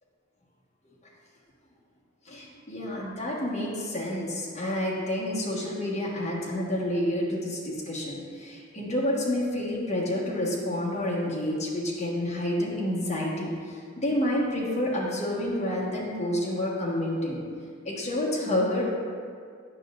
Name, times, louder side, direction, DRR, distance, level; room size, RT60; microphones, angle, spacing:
voice 1, 2.2-17.4 17.8-18.8, left 1 dB, 35° left, -5 dB, 1.4 m, -29 dB
9.5 x 5.7 x 2.5 m, 2.1 s
head